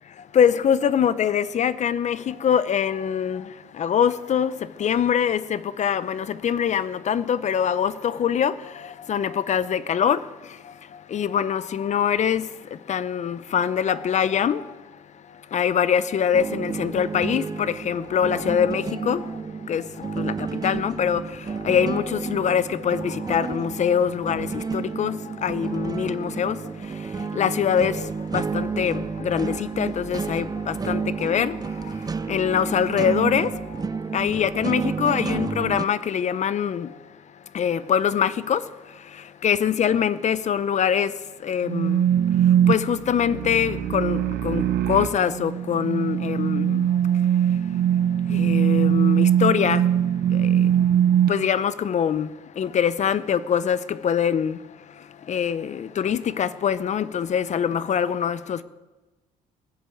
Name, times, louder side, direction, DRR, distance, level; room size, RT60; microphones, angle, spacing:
voice 1, 0.3-3.5 3.8-4.5 4.8-10.2 11.1-12.5 12.9-14.6 15.5-19.2 19.7-21.2 21.6-26.6 27.2-28.0 28.3-31.5 32.3-33.5 34.1-36.9 37.5-38.6 39.4-41.1 41.4-42.0 42.7-46.9 48.3-49.8 50.4-50.5 51.3-52.3 52.6-54.6 55.3-58.6, left 8 dB, 50° left, 16 dB, 0.8 m, -23 dB
sound 1, 16.3-35.8, right 5 dB, 25° right, 0.6 m, -31 dB
sound 2, 41.7-51.3, right 10 dB, 75° right, 0.9 m, -21 dB
18.0 x 7.0 x 9.1 m, 1.2 s
supercardioid pair, 85°, 16 cm